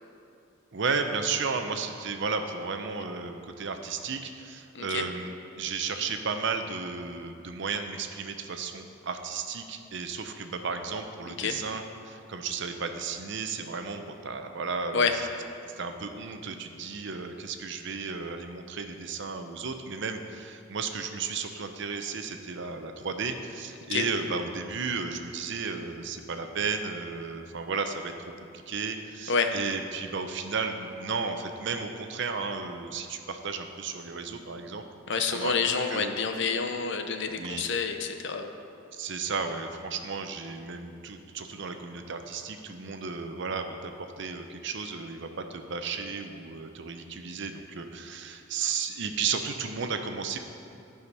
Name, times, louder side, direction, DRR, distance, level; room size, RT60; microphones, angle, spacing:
voice 1, 0.7-15.1 15.8-28.1 28.5-34.8 35.1-36.1 37.3-37.7 38.9-50.4, right 5 dB, 60° right, 6 dB, 0.7 m, -34 dB
voice 2, 4.7-5.1 11.4-11.6 14.9-15.2 23.9-24.1 29.3-29.5 35.1-38.5, left 5 dB, 60° left, 6 dB, 0.7 m, -28 dB
12.5 x 5.0 x 5.5 m, 2.6 s
head